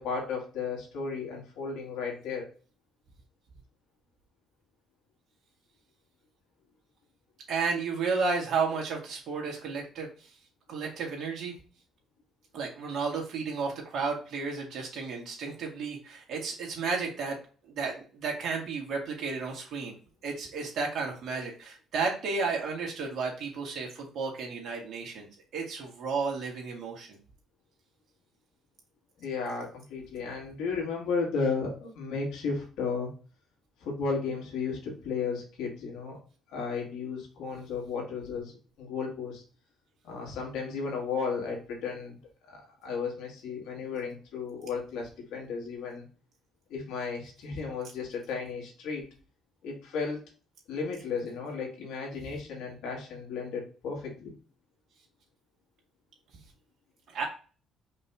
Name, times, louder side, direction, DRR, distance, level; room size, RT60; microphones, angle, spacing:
voice 1, 0.0-2.5 29.2-33.1 33.8-36.2 36.5-38.5 38.8-39.4 40.0-42.2 42.5-46.0 46.7-49.0 49.6-50.2 50.7-54.3, left 5 dB, 85° left, -1 dB, 2.1 m, -34 dB
voice 2, 7.5-10.3 10.7-11.5 12.5-17.4 17.7-19.9 20.2-25.3 25.5-27.2 57.1-57.2, right 4 dB, 65° right, 0 dB, 2.1 m, -32 dB
5.2 x 2.9 x 3.5 m, 0.38 s
cardioid pair, 105°, 0 cm